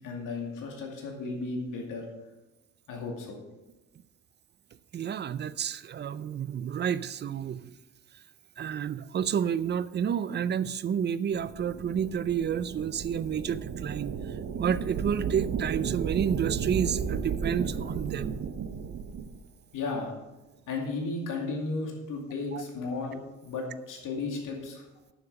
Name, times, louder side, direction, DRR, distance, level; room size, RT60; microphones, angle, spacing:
voice 1, 0.0-2.1 2.9-3.4 19.7-20.1 20.7-24.9, left 3 dB, 70° left, 0 dB, 2.3 m, -34 dB
voice 2, 4.9-7.7 8.6-18.4 22.5-22.6, right 8 dB, 35° right, 16 dB, 0.4 m, -30 dB
sound 1, 11.3-19.4, right 6 dB, 50° right, 1.0 m, -34 dB
9.8 x 7.2 x 6.2 m, 1.1 s
cardioid pair, 130°, 33 cm